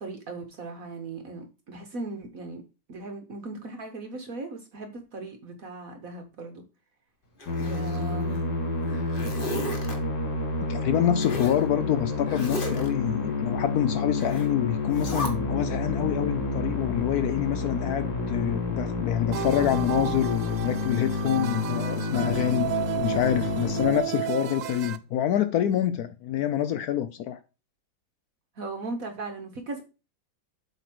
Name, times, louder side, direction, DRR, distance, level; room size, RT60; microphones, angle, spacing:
voice 1, 0.0-2.6 2.9-6.6 7.6-8.4 28.6-29.8, right 3 dB, 55° right, 1.1 m, -38 dB
Zipper (clothing), 7.4-8.4 8.8-9.9 11.2-11.6 12.3-12.9 14.2-14.5 14.9-15.3, equal, 30° left, 1.5 m, -35 dB
Musical instrument, 7.5-24.6, left 3 dB, 50° left, 2.8 m, -30 dB
voice 2, 10.7-22.7 23.0-27.4, left 11 dB, 80° left, 0.8 m, -26 dB
sound 1, 19.3-25.0, right 13 dB, 80° right, 1.3 m, -33 dB
8.0 x 3.4 x 5.9 m
omnidirectional pair, 2.1 m